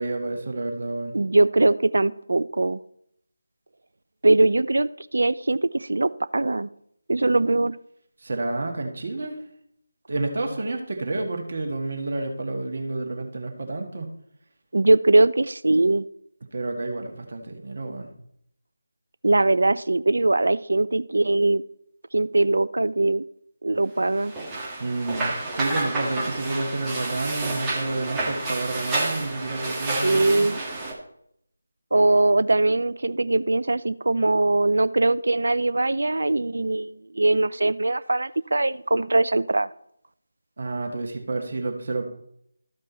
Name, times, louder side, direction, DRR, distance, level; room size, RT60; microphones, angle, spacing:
voice 1, 0.0-1.1 8.2-9.4 10.1-14.1 16.5-18.1 24.8-30.5 40.6-42.0, right 2 dB, 45° right, 2 dB, 1.5 m, -30 dB
voice 2, 1.1-2.8 4.2-6.7 7.1-7.8 14.7-16.1 19.2-21.6 22.1-23.2 23.6-24.3 30.0-30.6 31.9-39.7, right 2 dB, 65° right, 16 dB, 0.4 m, -21 dB
sound 1, 24.2-30.9, right 2 dB, 10° right, 1.3 m, -29 dB
13.5 x 5.3 x 4.2 m, 0.72 s
figure-of-eight pair, 160°, 0 cm